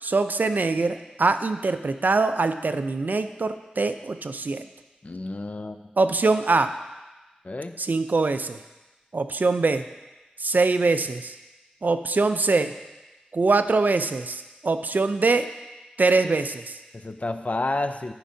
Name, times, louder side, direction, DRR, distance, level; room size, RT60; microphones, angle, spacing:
voice 1, 0.0-4.6 6.0-6.7 7.8-8.6 9.1-9.8 10.4-11.3 11.8-12.7 13.3-15.5 16.0-16.8, right 3 dB, 65° right, 9 dB, 0.4 m, -23 dB
voice 2, 5.0-5.8 7.4-7.8 16.9-18.1, left 2 dB, 50° left, 8 dB, 0.5 m, -30 dB
13.5 x 5.2 x 2.7 m, 1.1 s
wide cardioid pair, 50°, 3 cm